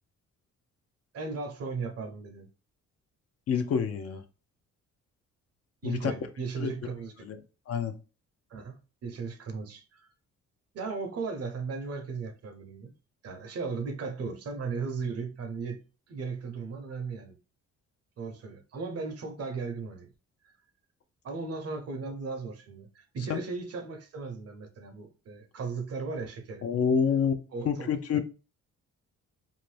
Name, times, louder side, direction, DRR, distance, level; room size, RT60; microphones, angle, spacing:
voice 1, 1.1-2.5 5.8-7.1 8.5-10.1 10.7-12.9 13.2-15.8 16.1-17.4 18.2-20.1 21.2-26.6 27.5-27.9, right 4 dB, 55° right, 0.7 m, -36 dB
voice 2, 3.5-4.2 5.8-6.1 6.6-6.7 7.2-7.4 7.7-8.0 23.3-23.4 26.6-28.2, left 6 dB, 55° left, 0.5 m, -27 dB
2.7 x 2.5 x 3.1 m
cardioid pair, 90°, 30 cm